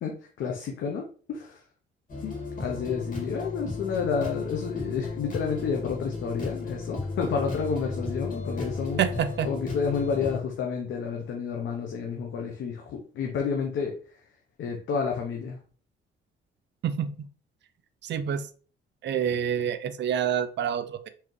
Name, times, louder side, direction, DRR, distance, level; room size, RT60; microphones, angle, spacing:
voice 1, 0.4-1.6 2.2-9.0 9.4-14.0 14.6-15.6, left 6 dB, 70° left, 1 dB, 0.9 m, -30 dB
sound 1, 2.1-10.4, left 3 dB, 45° left, 2.4 m, -34 dB
voice 2, 9.0-9.5 16.8-17.3 18.0-18.4 19.0-21.1, right 8 dB, 65° right, 11 dB, 0.6 m, -27 dB
4.6 x 3.5 x 3.2 m, 0.41 s
cardioid pair, 90°, 20 cm